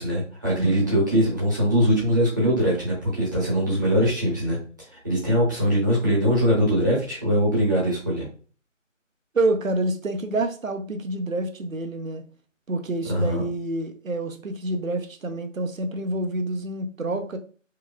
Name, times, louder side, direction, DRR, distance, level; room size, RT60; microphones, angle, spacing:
voice 1, 0.0-4.6 4.9-8.2 13.1-13.4, equal, 15° right, 1.3 m, -22 dB
voice 2, 0.5-1.0 9.3-12.2 12.7-17.4, right 2 dB, 85° right, 0.9 m, -27 dB
4.7 x 3.1 x 2.3 m
figure-of-eight pair, 170°, 39 cm